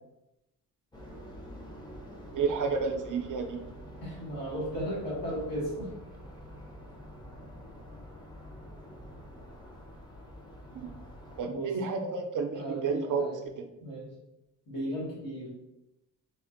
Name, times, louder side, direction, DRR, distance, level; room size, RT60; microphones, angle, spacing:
sound 1, 0.9-11.4, equal, 15° left, 0.6 m, -47 dB
voice 1, 2.3-3.6 10.7-10.9 11.4-13.7, right 5 dB, 65° right, 6 dB, 0.5 m, -31 dB
voice 2, 4.0-5.9 11.4-11.7 12.5-13.4 13.8-14.1 14.7-15.5, right 1 dB, 75° left, -5 dB, 1.5 m, -35 dB
3.5 x 2.5 x 2.5 m, 0.90 s
cardioid pair, 80°, 34 cm